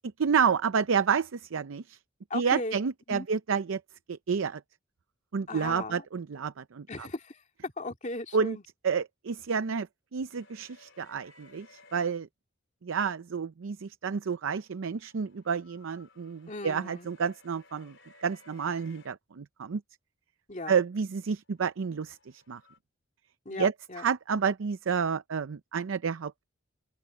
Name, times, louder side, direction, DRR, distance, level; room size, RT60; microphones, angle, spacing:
voice 1, 0.2-2.0 2.3-3.8 4.1-4.6 5.3-7.1 8.3-8.6 8.8-9.9 10.1-12.3 12.8-19.8 20.7-22.2 22.5-22.6 23.6-26.4, right 6 dB, 80° right, 0.5 m, -30 dB
voice 2, 2.3-2.7 3.1-3.3 5.5-6.0 6.9-8.6 16.5-17.1 20.5-20.8 23.5-24.0, left 2 dB, 35° left, 2.3 m, -37 dB
sound 1, 10.3-12.1 14.5-19.1 21.5-22.8, left 3 dB, 70° left, 4.1 m, -59 dB
head